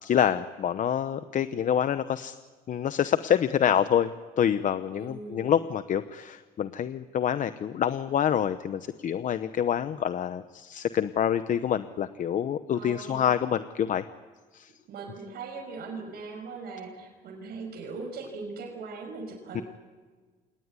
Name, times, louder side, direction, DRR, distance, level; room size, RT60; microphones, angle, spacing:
voice 1, 0.0-2.3 2.7-4.1 4.4-14.0 14.5-14.7 19.5-19.6, left 9 dB, 50° left, 12 dB, 0.9 m, -27 dB
voice 2, 5.0-5.5 12.7-13.3 14.9-19.6, right 4 dB, 70° right, 1 dB, 6.0 m, -40 dB
27.0 x 19.5 x 9.8 m, 1.4 s
cardioid pair, 110°, 17 cm